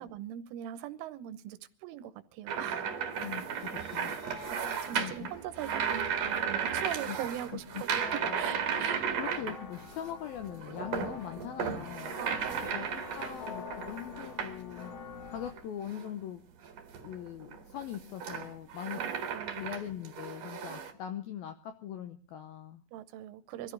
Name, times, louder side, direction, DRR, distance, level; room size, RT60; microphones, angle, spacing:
voice 1, 0.0-2.9 4.5-9.0 12.2-12.9 19.0-19.6 22.9-23.7, right 11 dB, 85° right, 13 dB, 3.5 m, -41 dB
rolling batteries, 2.5-10.1 10.4-14.9 15.4-16.1 16.6-20.9, right 7 dB, 50° right, 2.3 m, -35 dB
voice 2, 3.2-4.2 4.9-5.3 7.1-7.2 7.5-7.8 9.0-12.2 12.7-14.9 15.3-16.4 17.0-19.0 19.6-22.8, left 10 dB, 80° left, 8 dB, 2.1 m, -41 dB
sound 1, 3.5-15.5, left 6 dB, 65° left, 3.7 m, -47 dB
23.0 x 14.5 x 4.0 m, 0.39 s
omnidirectional pair, 5.6 m